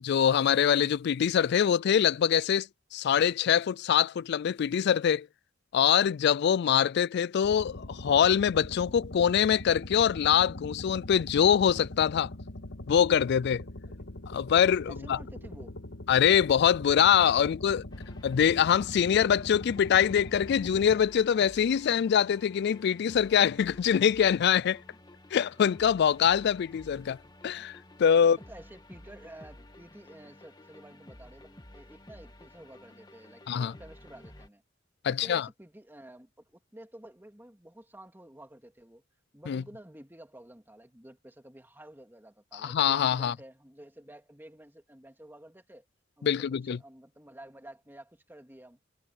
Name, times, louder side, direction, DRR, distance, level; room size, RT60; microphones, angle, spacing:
voice 1, 0.0-5.3 5.7-12.3 12.9-13.6 14.3-15.2 16.1-17.8 18.2-24.8 25.3-27.2 27.4-28.4 33.5-33.7 35.0-35.5 39.5-39.6 42.5-43.3 46.2-46.8, left 8 dB, 60° left, 0.3 m, -24 dB
sound 1, 7.4-21.0, left 1 dB, 75° left, 1.7 m, -42 dB
voice 2, 14.9-15.8 17.2-17.5 28.2-34.6 35.0-39.0 39.3-45.9 46.2-46.4 46.6-48.8, right 1 dB, 10° right, 2.4 m, -51 dB
sound 2, 17.9-34.5, left 1 dB, 20° left, 1.7 m, -52 dB
head